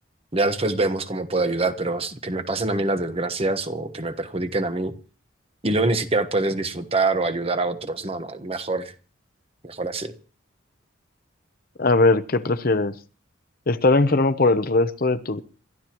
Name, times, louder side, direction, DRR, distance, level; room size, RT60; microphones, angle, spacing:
voice 1, 0.3-4.9 5.6-8.9 9.6-10.1, right 2 dB, 30° right, 1.2 m, -25 dB
voice 2, 11.8-12.9 13.7-15.4, left 2 dB, 45° left, 0.8 m, -20 dB
27.0 x 13.5 x 3.0 m
head